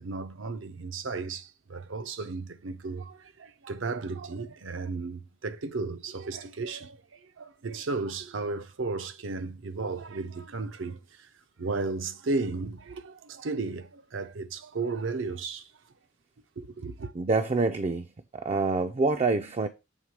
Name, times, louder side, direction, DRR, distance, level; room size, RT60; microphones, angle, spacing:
voice 1, 0.0-11.3 11.6-15.7 16.6-17.1, right 3 dB, 70° right, 0.6 m, -34 dB
voice 2, 17.1-19.7, right 3 dB, 35° right, 0.4 m, -26 dB
7.3 x 3.6 x 4.6 m
head